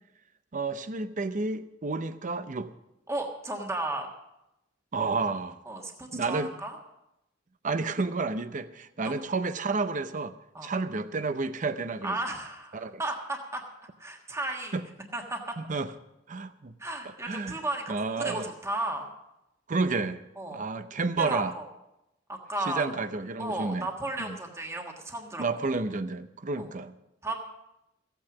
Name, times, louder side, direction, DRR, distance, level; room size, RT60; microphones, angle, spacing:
voice 1, 0.5-2.7 4.9-5.6 6.1-6.5 7.6-10.3 10.6-12.2 12.7-13.0 14.7-14.8 15.6-15.9 16.3-16.7 17.2-17.6 17.9-18.5 19.7-20.2 20.5-21.5 22.7-23.9 24.2-24.4 25.4-26.9, right 3 dB, 40° right, 12 dB, 0.7 m, -30 dB
voice 2, 3.1-4.1 5.0-5.3 5.6-6.8 9.0-9.3 10.5-10.7 12.0-13.6 14.0-14.7 15.1-15.6 16.8-19.1 20.4-20.6 21.2-21.6 22.3-22.8 23.4-25.5 26.5-26.7 27.2-27.4, right 2 dB, 15° right, 2 dB, 1.5 m, -34 dB
15.0 x 9.1 x 6.0 m, 0.88 s
head